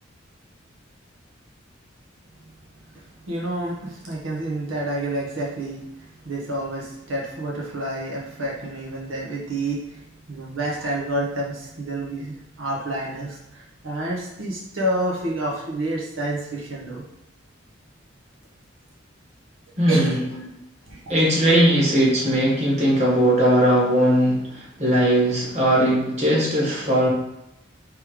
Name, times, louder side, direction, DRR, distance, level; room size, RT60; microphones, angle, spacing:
voice 1, 2.9-17.1 19.9-21.0, right 1 dB, 85° right, -4 dB, 0.9 m, -29 dB
voice 2, 19.8-20.2 21.1-27.1, equal, 35° right, -5 dB, 1.4 m, -19 dB
3.4 x 3.2 x 4.7 m, 0.88 s
head